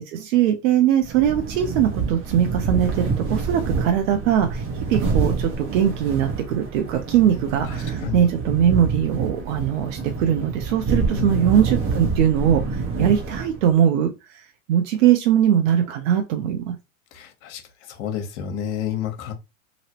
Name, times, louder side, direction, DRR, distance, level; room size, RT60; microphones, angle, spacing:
voice 1, 0.0-4.6 4.9-14.4 14.7-16.7, right 9 dB, 65° right, 0.7 m, -21 dB
sound 1, 1.0-13.7, right 4 dB, 30° right, 1.2 m, -27 dB
voice 2, 7.7-8.3 11.1-11.5 17.1-19.3, left 9 dB, 55° left, 1.1 m, -30 dB
3.0 x 2.6 x 2.9 m
hypercardioid pair, 105°, 41 cm